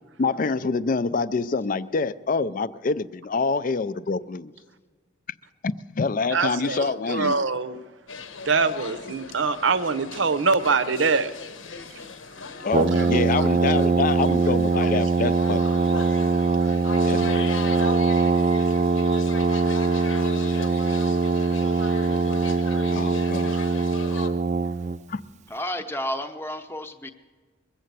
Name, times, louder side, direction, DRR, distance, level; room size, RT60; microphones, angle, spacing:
voice 1, 0.2-4.5 5.6-7.4 12.6-15.6 17.0-17.5 22.9-23.5 25.1-25.2, left 4 dB, 40° left, 16 dB, 0.4 m, -26 dB
voice 2, 6.3-7.8 8.5-11.3 13.0-13.1 13.3-13.4, right 4 dB, 65° right, 14 dB, 0.7 m, -24 dB
sound 1, 8.1-24.3, left 5 dB, 80° left, 1.0 m, -38 dB
Brass instrument, 12.7-25.0, right 4 dB, 35° right, 0.4 m, -22 dB
voice 3, 25.5-27.1, left 1 dB, 10° left, 7 dB, 0.8 m, -31 dB
21.5 x 7.6 x 8.1 m, 1.4 s
head